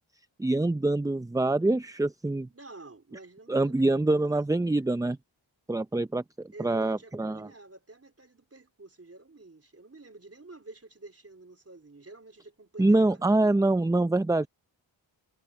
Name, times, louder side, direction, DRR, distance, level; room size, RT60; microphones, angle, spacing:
voice 1, 0.4-2.5 3.5-5.2 5.7-7.4 12.8-14.5, right 2 dB, 10° right, 0.5 m, -25 dB
voice 2, 2.5-4.3 6.5-13.2, right 2 dB, 30° right, 4.1 m, -49 dB
cardioid pair, 55°, 48 cm